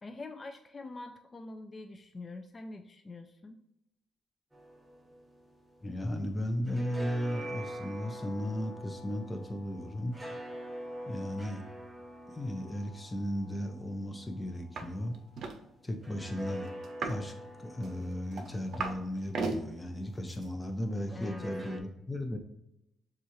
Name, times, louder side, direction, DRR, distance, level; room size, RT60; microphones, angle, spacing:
voice 1, 0.0-3.6 21.1-21.4, left 2 dB, 30° left, 6 dB, 0.4 m, -45 dB
sound 1, 4.5-6.2 6.5-15.2 16.0-20.1 21.1-21.8, right 1 dB, 10° right, 0.9 m, -44 dB
voice 2, 5.8-10.1 11.1-11.6 12.3-15.1 15.8-16.7 17.0-17.3 17.6-22.4, left 1 dB, 15° left, 4 dB, 0.7 m, -35 dB
sound 2, 14.7-14.9 15.1-15.6 16.8-17.3 17.8-19.0 19.3-19.6 20.3-20.4, right 4 dB, 60° right, 0.7 m, -36 dB
7.0 x 2.4 x 3.1 m, 0.84 s
cardioid pair, 90°, 0 cm